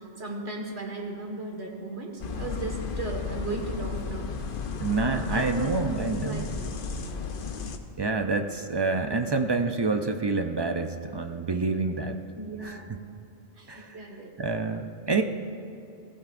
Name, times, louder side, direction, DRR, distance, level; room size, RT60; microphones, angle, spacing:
voice 1, 0.0-4.3 5.3-6.5 12.4-12.8 13.6-14.6, right 3 dB, 70° right, 1 dB, 2.0 m, -36 dB
sound 1, 2.2-7.8, left 5 dB, 55° left, 0.8 m, -34 dB
voice 2, 4.8-6.5 8.0-12.2 12.6-12.8 13.7-14.0 14.4-15.2, right 3 dB, 45° right, 6 dB, 0.3 m, -27 dB
17.0 x 15.5 x 2.6 m, 2.6 s
omnidirectional pair, 1.1 m